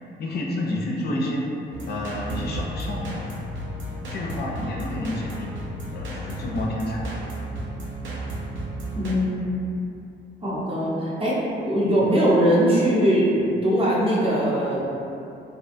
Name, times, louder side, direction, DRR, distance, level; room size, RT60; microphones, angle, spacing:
voice 1, 0.2-1.5 1.9-3.1 4.1-5.6 5.9-7.2, left 1 dB, 55° left, -2 dB, 0.4 m, -29 dB
sound 1, 1.7-9.1, equal, 70° right, 0.5 m, -33 dB
voice 2, 8.9-9.4 10.4-14.8, equal, 30° right, -7 dB, 0.7 m, -21 dB
2.6 x 2.1 x 2.6 m, 2.7 s
cardioid pair, 90°, 20 cm